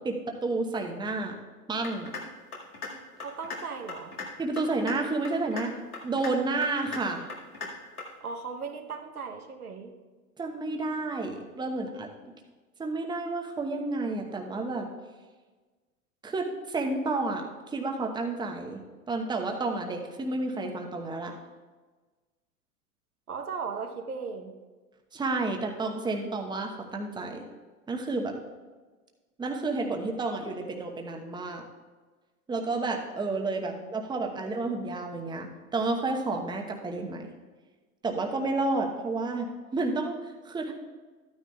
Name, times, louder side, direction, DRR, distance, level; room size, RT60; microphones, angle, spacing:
voice 1, 0.0-1.3 1.7-2.1 4.4-5.8 6.0-7.3 10.4-12.1 12.8-14.9 16.2-21.4 25.1-27.4 27.9-28.4 29.4-31.6 32.5-37.3 38.0-40.7, right 3 dB, 10° right, 2 dB, 0.9 m, -31 dB
sound 1, 1.8-2.2 2.5-2.9 3.2-3.6 3.9-4.3 4.6-4.9 5.2-5.7 5.9-6.3 6.6-7.0 7.3-7.7 8.0-8.1, left 5 dB, 85° left, 2.0 m, -37 dB
voice 2, 3.2-4.1 8.2-9.9 23.3-24.6 33.6-33.9 34.2-34.4, right 5 dB, 85° right, 3 dB, 1.0 m, -37 dB
14.0 x 9.4 x 2.3 m, 1.3 s
figure-of-eight pair, 85°, 43 cm